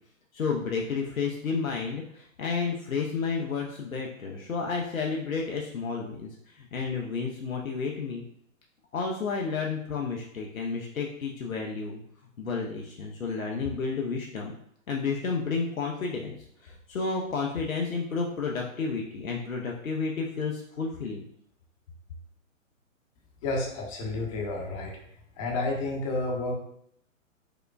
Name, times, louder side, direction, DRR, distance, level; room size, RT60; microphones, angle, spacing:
voice 1, 0.3-8.2 8.9-12.0 12.4-14.5 14.9-16.3 16.6-21.2, left 4 dB, 85° left, -1 dB, 0.6 m, -31 dB
voice 2, 23.4-25.0 25.4-26.5, left 2 dB, 25° left, -1 dB, 0.7 m, -30 dB
4.8 x 2.1 x 2.3 m, 0.69 s
figure-of-eight pair, 115°, 40 cm